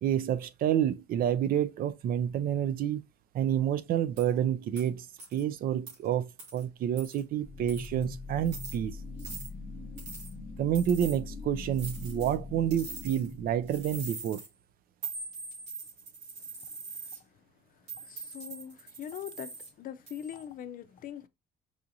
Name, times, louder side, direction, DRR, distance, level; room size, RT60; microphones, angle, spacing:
voice 1, 0.0-3.0 3.3-5.1 5.3-9.0 10.6-14.4, right 10 dB, 60° right, 0.4 m, -29 dB
sound 1, 4.2-4.3 4.8-4.9 5.2-5.4 5.9-6.0 6.4-6.6 7.0-7.2 7.7-8.0 8.4-8.8 9.2-9.5 10.0-10.3 10.7-11.2 11.7-12.3 12.7-13.3 13.7-14.5 15.0-17.2 17.9-19.7 20.1-20.4, right 4 dB, 90° right, 2.4 m, -43 dB
sound 2, 7.4-14.1, left 3 dB, 30° left, 1.1 m, -42 dB
voice 2, 18.0-21.3, left 10 dB, 55° left, 0.5 m, -42 dB
4.9 x 2.5 x 2.6 m
cardioid pair, 110°, 17 cm